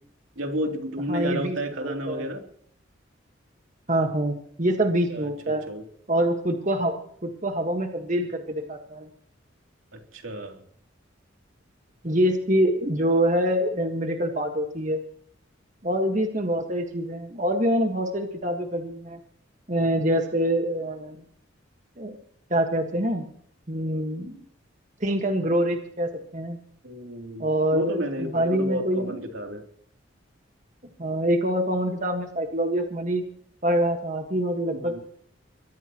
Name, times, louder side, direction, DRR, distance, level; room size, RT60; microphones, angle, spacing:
voice 1, 0.4-2.4 5.1-5.8 10.1-10.6 26.8-29.6 34.7-35.0, equal, 85° right, 3 dB, 3.1 m, -32 dB
voice 2, 1.1-2.2 3.9-5.6 6.1-9.1 12.0-15.0 15.8-19.2 19.7-21.2 22.0-22.2 22.5-23.2 23.7-24.4 25.0-26.6 27.4-29.2 31.0-33.2 33.6-35.0, right 1 dB, 40° right, 4 dB, 1.6 m, -25 dB
23.5 x 16.5 x 3.0 m, 0.63 s
head